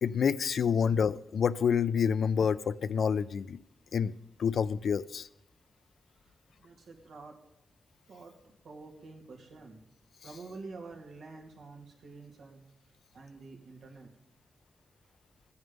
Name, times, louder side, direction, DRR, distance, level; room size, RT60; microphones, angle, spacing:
voice 1, 0.0-3.6 3.9-4.1 4.4-5.3, left 7 dB, 75° left, 15 dB, 0.4 m, -28 dB
voice 2, 6.2-7.4 8.1-8.3 8.6-9.8 10.2-12.6 13.1-14.1, right 3 dB, 85° right, 1 dB, 2.5 m, -48 dB
15.5 x 9.5 x 5.3 m, 0.81 s
wide cardioid pair, 130°, 0 cm